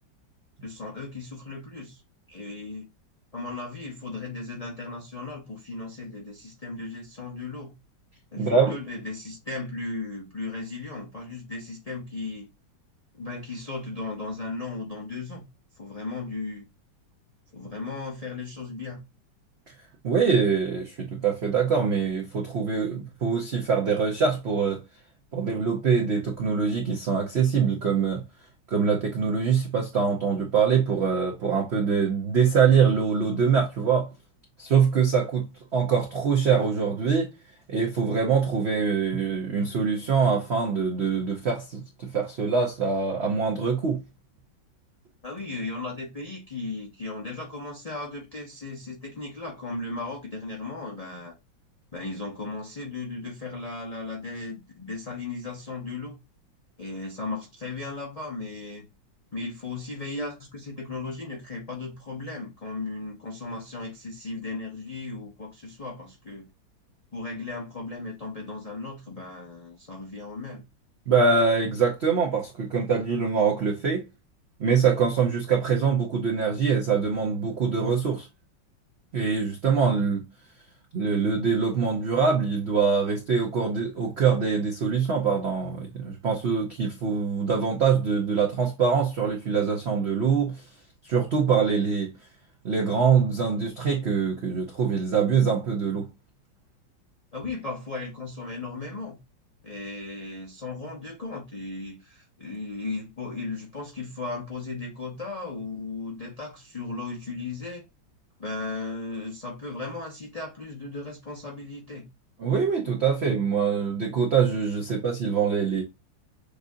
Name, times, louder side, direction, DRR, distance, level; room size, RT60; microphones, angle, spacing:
voice 1, 0.6-2.0 2.3-2.9 3.3-7.8 8.3-12.5 13.1-15.4 15.8-16.6 17.5-19.0 45.2-51.3 51.9-56.2 56.8-58.9 59.3-66.5 67.1-70.6 97.3-99.2 99.6-107.9 108.4-112.1, left 3 dB, 65° left, 0.3 m, -36 dB
voice 2, 8.4-8.8 20.0-24.8 25.3-28.2 28.7-34.1 34.6-37.3 37.7-44.0 71.1-74.1 74.6-78.3 79.1-80.2 80.9-90.6 91.0-92.1 92.6-96.1 112.4-115.8, right 6 dB, 80° right, 0.5 m, -24 dB
6.5 x 2.5 x 2.7 m
omnidirectional pair, 2.1 m